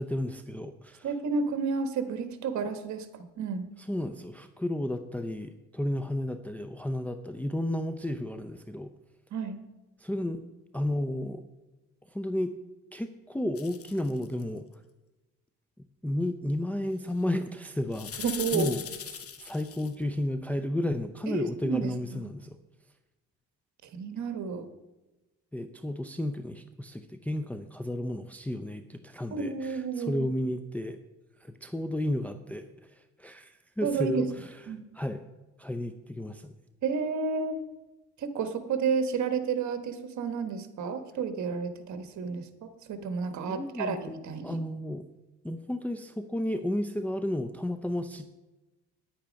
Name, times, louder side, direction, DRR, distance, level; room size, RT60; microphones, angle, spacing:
voice 1, 0.0-1.1 3.8-8.9 10.0-10.4 10.7-11.4 12.1-12.5 12.9-14.7 16.0-18.3 18.5-18.8 19.1-22.6 25.5-31.0 31.4-34.6 34.9-35.2 35.6-36.5 43.5-44.0 44.4-45.0 45.4-48.3, left 1 dB, 5° left, 8 dB, 0.5 m, -32 dB
voice 2, 1.0-3.7 9.3-9.6 18.2-18.8 21.3-22.3 23.8-24.7 29.3-30.2 33.8-34.3 34.7-34.8 36.8-37.6 38.2-44.6, right 5 dB, 70° right, 9 dB, 1.3 m, -31 dB
sound 1, 13.6-14.4 17.9-19.9, left 8 dB, 50° left, 1.1 m, -39 dB
10.0 x 8.7 x 5.2 m, 1.1 s
cardioid pair, 90°, 30 cm